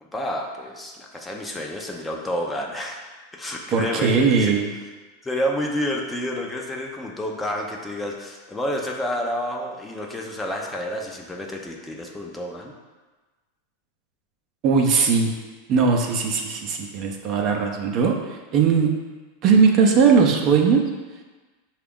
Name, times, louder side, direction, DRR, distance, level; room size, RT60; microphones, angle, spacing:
voice 1, 0.0-3.0 3.3-4.5 5.2-12.7, equal, 10° left, 0 dB, 0.6 m, -29 dB
voice 2, 3.7-4.7 14.6-15.3 15.7-18.9 19.4-20.8, right 5 dB, 45° right, 2 dB, 0.6 m, -19 dB
5.7 x 2.4 x 3.6 m, 1.3 s
hypercardioid pair, 105°, 0 cm